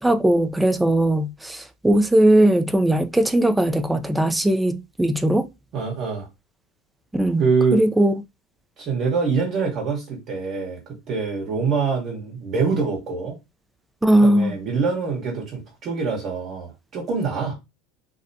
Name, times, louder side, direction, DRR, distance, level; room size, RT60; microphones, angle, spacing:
voice 1, 0.0-5.5 7.1-7.4 7.7-8.2 14.0-14.6, right 1 dB, 5° right, 0.4 m, -19 dB
voice 2, 5.7-6.3 7.4-7.8 8.8-13.4 14.2-17.5, right 5 dB, 45° right, 1.0 m, -25 dB
2.5 x 2.1 x 2.7 m
hypercardioid pair, 85°, 0 cm